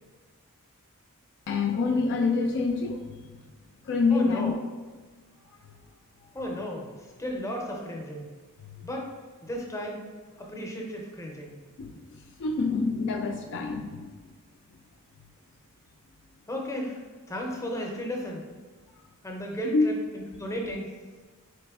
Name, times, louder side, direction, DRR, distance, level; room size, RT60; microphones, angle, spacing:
voice 1, 1.5-3.2 3.8-4.5 5.6-5.7 8.6-8.9 11.8-14.1 19.7-19.9, left 4 dB, 55° left, 4 dB, 0.3 m, -27 dB
voice 2, 4.1-4.6 6.3-8.3 8.8-9.1 9.4-10.0 10.4-11.6 16.5-17.0 17.3-18.5 19.2-20.9, equal, 15° left, 0 dB, 0.6 m, -34 dB
3.9 x 3.2 x 3.5 m, 1.4 s
head